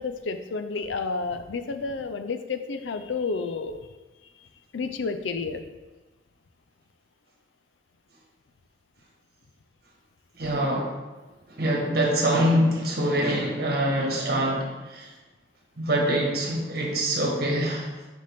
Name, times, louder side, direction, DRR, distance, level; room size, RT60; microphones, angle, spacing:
voice 1, 0.0-3.8 4.7-5.7 10.4-10.5, left 4 dB, 90° left, 9 dB, 0.5 m, -30 dB
voice 2, 10.4-11.0 11.6-15.1 15.8-17.9, right 1 dB, 55° right, 0 dB, 1.4 m, -24 dB
6.6 x 5.4 x 3.5 m, 1.2 s
head